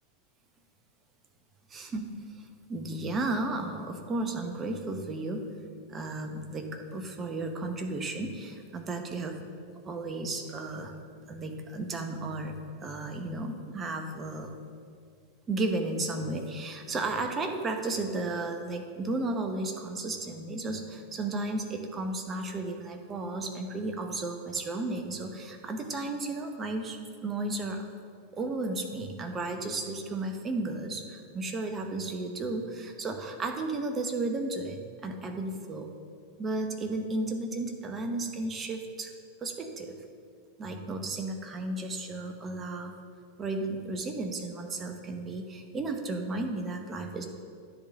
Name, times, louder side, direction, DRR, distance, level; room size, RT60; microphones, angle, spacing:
voice 1, 1.7-5.5 5.9-9.5 9.8-10.9 11.3-12.5 12.8-14.6 15.5-27.9 28.3-35.9 36.4-39.1 39.4-40.0 40.6-42.9 43.4-47.2, right 2 dB, 20° right, 5 dB, 0.9 m, -34 dB
10.0 x 3.9 x 7.2 m, 2.2 s
figure-of-eight pair, 90°, 0 cm